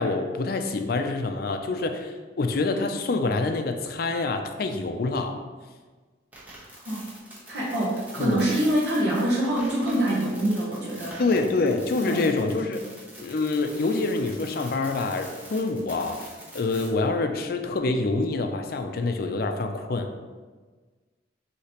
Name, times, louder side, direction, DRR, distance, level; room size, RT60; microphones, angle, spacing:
voice 1, 0.0-5.4 8.2-8.4 11.2-12.8 13.2-16.3 16.5-20.1, left 3 dB, 55° left, 6 dB, 0.4 m, -26 dB
sound 1, 6.3-16.9, right 1 dB, 10° right, 1.0 m, -45 dB
voice 2, 6.6-7.1 7.5-11.2 12.0-12.2, right 1 dB, 60° right, -6 dB, 0.9 m, -25 dB
6.4 x 2.9 x 2.9 m, 1.4 s
head